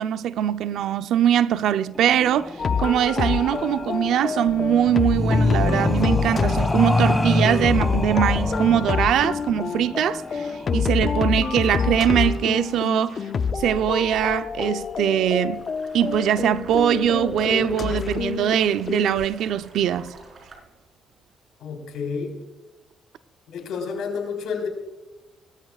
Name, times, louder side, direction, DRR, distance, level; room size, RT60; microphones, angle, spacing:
voice 1, 0.0-13.2 13.6-15.6 15.9-20.1, right 10 dB, 80° right, 0.6 m, -22 dB
sound 1, 1.9-10.9, left 2 dB, 10° left, 1.7 m, -26 dB
sound 2, 2.6-19.3, left 6 dB, 45° left, 0.6 m, -27 dB
sound 3, 15.5-20.6, right 3 dB, 40° right, 4.6 m, -49 dB
voice 2, 21.6-22.4 23.5-24.7, left 5 dB, 85° left, 4.0 m, -30 dB
20.0 x 13.5 x 2.4 m
cardioid pair, 90°, 0 cm